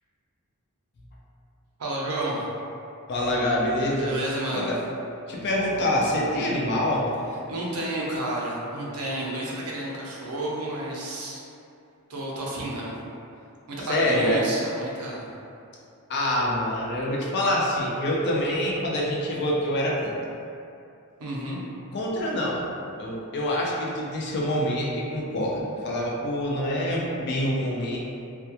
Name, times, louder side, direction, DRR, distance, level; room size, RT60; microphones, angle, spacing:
voice 1, 1.8-2.4 4.0-4.7 7.5-11.4 12.1-12.9 13.7-15.3 21.2-21.6, right 1 dB, 75° right, -4 dB, 0.5 m, -31 dB
voice 2, 3.1-4.1 4.5-4.7 5.3-7.1 13.9-14.4 16.1-20.2 21.9-22.6 23.0-28.0, left 1 dB, 50° left, -4 dB, 0.4 m, -26 dB
2.2 x 2.2 x 2.8 m, 2.6 s
head